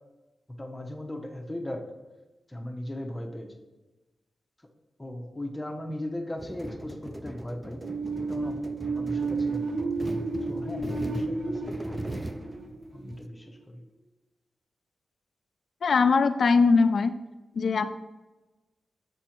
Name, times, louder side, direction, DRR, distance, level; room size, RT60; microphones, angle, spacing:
voice 1, 0.6-1.9 2.5-3.5 5.0-7.8 8.2-10.0 10.5-12.2 12.9-13.8, left 1 dB, 15° left, 4 dB, 0.8 m, -38 dB
sound 1, 6.4-13.3, right 1 dB, 15° right, 0.3 m, -40 dB
sound 2, 7.8-13.5, right 3 dB, 80° right, 0.7 m, -32 dB
voice 2, 15.8-17.1 17.6-17.8, left 4 dB, 60° left, 11 dB, 0.4 m, -21 dB
7.3 x 4.3 x 4.4 m, 1.1 s
wide cardioid pair, 105°, 0 cm